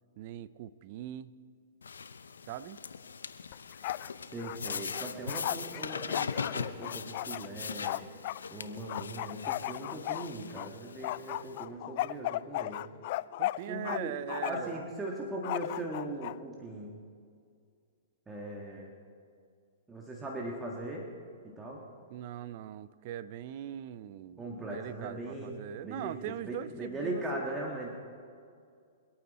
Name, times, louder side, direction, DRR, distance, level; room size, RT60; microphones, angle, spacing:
voice 1, 0.2-1.3 2.5-2.8 13.4-14.9 22.1-27.4, right 11 dB, 50° right, 17 dB, 0.6 m, -41 dB
sound 1, 1.8-11.6, left 5 dB, 85° left, 0.7 m, -40 dB
Bark, 3.5-4.1 4.4-8.4 8.9-10.7 11.0-14.0 14.3-14.8 15.4-16.3, left 16 dB, 50° left, 0.3 m, -36 dB
voice 2, 4.3-8.0 8.5-12.8 13.7-14.1 14.4-16.9 18.3-18.9 19.9-21.1 21.4-21.8 24.4-25.6 25.8-27.9, right 1 dB, 10° right, -2 dB, 1.8 m, -39 dB
25.5 x 8.8 x 4.2 m, 2.2 s
hypercardioid pair, 130°, 0 cm